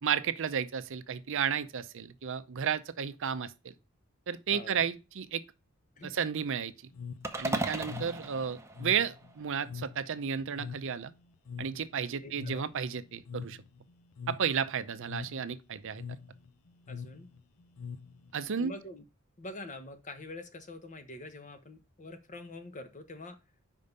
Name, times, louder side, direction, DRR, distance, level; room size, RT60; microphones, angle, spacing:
voice 1, 0.0-3.7 4.3-5.4 6.0-6.7 7.4-11.1 11.6-13.6 14.3-16.0 18.3-18.8, right 7 dB, 65° right, 0.6 m, -33 dB
voice 2, 4.5-4.9 6.0-6.2 12.2-12.6 16.9-17.3 18.6-19.0 19.4-23.4, left 2 dB, 35° left, 1.1 m, -45 dB
sound 1, 6.9-18.5, left 6 dB, 70° left, 0.5 m, -45 dB
sound 2, 7.2-9.6, right 2 dB, 15° right, 0.8 m, -36 dB
5.3 x 5.2 x 5.3 m
head